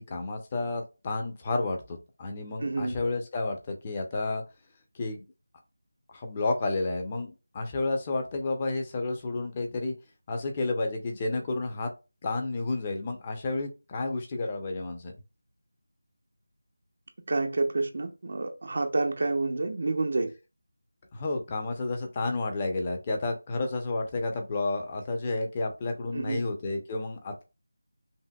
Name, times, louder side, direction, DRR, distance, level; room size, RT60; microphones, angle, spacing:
voice 1, 0.0-4.4 4.9-5.2 6.1-9.9 10.3-11.9 12.2-15.1 21.1-27.4, left 2 dB, 25° left, 0.8 m, -31 dB
voice 2, 2.6-3.0 17.3-20.3 26.1-26.4, right 3 dB, 50° right, 0.6 m, -28 dB
5.5 x 2.4 x 2.3 m
figure-of-eight pair, 165°, 0 cm